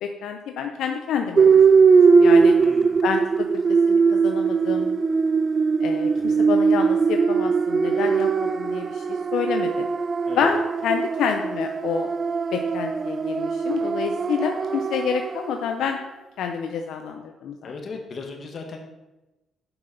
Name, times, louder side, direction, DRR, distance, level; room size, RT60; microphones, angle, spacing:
voice 1, 0.0-2.5 3.0-3.2 3.9-5.0 5.8-9.0 9.3-9.9 10.4-12.1 12.5-16.0 16.4-17.7, left 7 dB, 80° left, 5 dB, 0.6 m, -28 dB
sound 1, 1.4-15.6, right 5 dB, 40° right, 0.4 m, -20 dB
voice 2, 2.6-3.0 10.3-10.5 17.6-18.8, left 4 dB, 45° left, 3 dB, 1.5 m, -36 dB
6.8 x 5.8 x 5.3 m, 1.0 s
cardioid pair, 90°, 0 cm